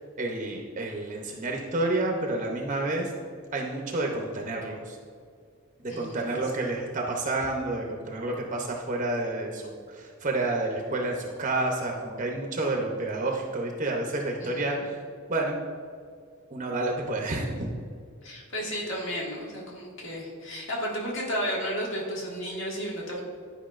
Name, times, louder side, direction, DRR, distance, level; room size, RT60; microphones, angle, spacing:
voice 1, 0.2-3.1 3.5-5.0 5.8-14.8 15.3-15.6 16.5-17.7, right 2 dB, 35° right, 1 dB, 0.6 m, -29 dB
voice 2, 5.9-6.5 14.4-14.8 18.2-23.2, equal, 60° left, -3 dB, 1.7 m, -33 dB
10.5 x 5.4 x 2.5 m, 2.1 s
head